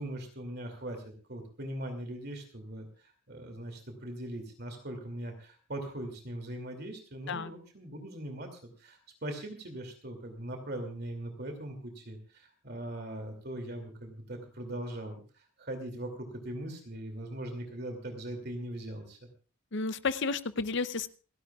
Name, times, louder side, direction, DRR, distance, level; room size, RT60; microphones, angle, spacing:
voice 1, 0.0-19.3, right 1 dB, 45° right, 5 dB, 2.7 m, -40 dB
voice 2, 19.7-21.1, left 4 dB, 55° left, 14 dB, 0.7 m, -32 dB
28.5 x 11.5 x 2.4 m, 0.36 s
head